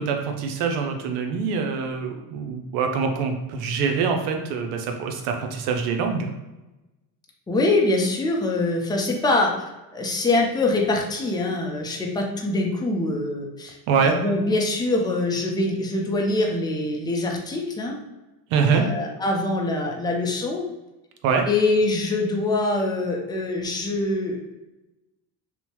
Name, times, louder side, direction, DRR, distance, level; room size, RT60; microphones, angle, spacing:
voice 1, 0.0-6.3 13.9-14.1 18.5-18.8 21.2-21.5, right 5 dB, 80° right, 4 dB, 0.6 m, -24 dB
voice 2, 7.5-9.5 9.9-13.8 14.0-17.9 18.7-20.6 21.5-24.4, left 2 dB, 10° left, 0 dB, 0.5 m, -24 dB
2.8 x 2.1 x 2.9 m, 1.0 s
supercardioid pair, 75°, 44 cm